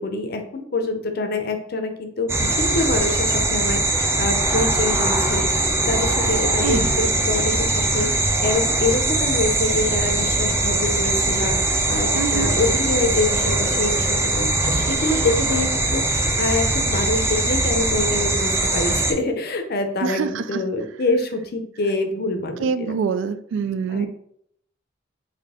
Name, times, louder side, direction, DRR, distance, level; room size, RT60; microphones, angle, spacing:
voice 1, 0.0-7.7 7.9-22.9 23.9-24.1, left 2 dB, 55° left, 6 dB, 0.5 m, -26 dB
sound 1, 2.3-19.1, right 2 dB, 15° right, 0.4 m, -21 dB
voice 2, 6.6-6.9 12.1-12.5 20.0-20.6 22.6-24.1, right 5 dB, 80° right, 13 dB, 0.3 m, -25 dB
4.1 x 2.7 x 3.5 m, 0.69 s
head